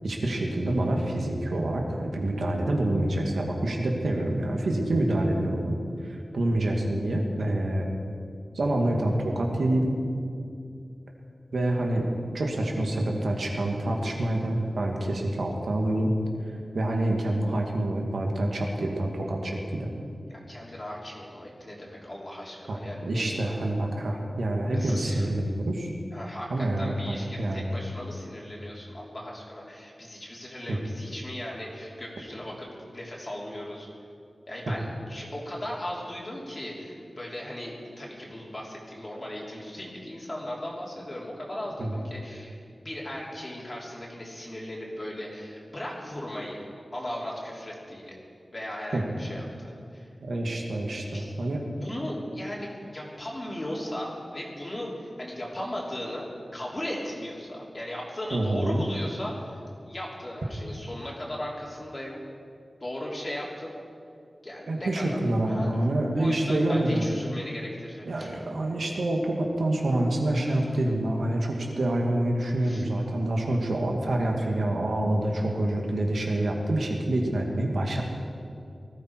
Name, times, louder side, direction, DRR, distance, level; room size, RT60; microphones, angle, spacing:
voice 1, 0.0-7.9 8.5-10.0 11.5-12.1 12.3-16.1 16.7-19.9 22.7-25.9 26.5-27.8 30.7-30.8 41.8-41.9 48.9-49.0 50.2-51.6 58.3-58.8 64.7-67.1 68.1-78.0, right 1 dB, 85° right, 1 dB, 2.2 m, -27 dB
voice 2, 20.3-23.4 24.7-25.3 26.1-33.9 34.5-42.5 42.8-46.7 46.9-48.2 48.5-50.1 51.1-62.1 62.8-63.7 64.4-65.9 66.2-68.4 70.4-70.6 72.6-72.9, left 1 dB, 30° left, -4 dB, 3.2 m, -37 dB
19.5 x 14.0 x 4.8 m, 2.4 s
wide cardioid pair, 100°, 0 cm